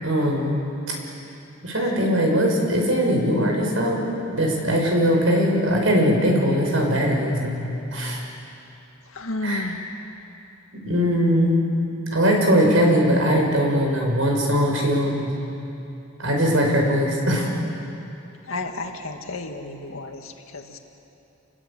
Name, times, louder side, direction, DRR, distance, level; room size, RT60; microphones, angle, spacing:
voice 1, 0.0-0.6 1.6-8.2 9.4-9.7 10.8-11.6 12.1-15.3 16.2-17.5, equal, 70° right, 1 dB, 5.7 m, -21 dB
voice 2, 9.1-9.9 18.5-20.8, left 2 dB, 85° left, 4 dB, 2.1 m, -32 dB
27.5 x 20.5 x 8.6 m, 2.8 s
head